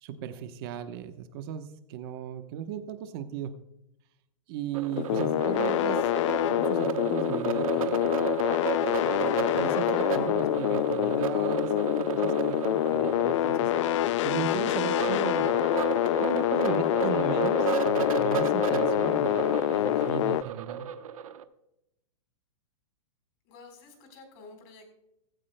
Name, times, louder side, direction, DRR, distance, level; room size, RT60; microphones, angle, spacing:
voice 1, 0.0-3.6 4.5-8.3 8.9-15.6 16.2-20.9, right 9 dB, 45° right, 8 dB, 1.0 m, -37 dB
sound 1, 4.7-21.4, right 9 dB, 80° right, 1.0 m, -33 dB
sound 2, 4.9-20.4, left 15 dB, 60° left, 0.4 m, -26 dB
voice 2, 23.5-24.9, left 3 dB, 45° left, 4 dB, 4.1 m, -50 dB
16.5 x 16.0 x 2.2 m, 0.85 s
hypercardioid pair, 150°, 18 cm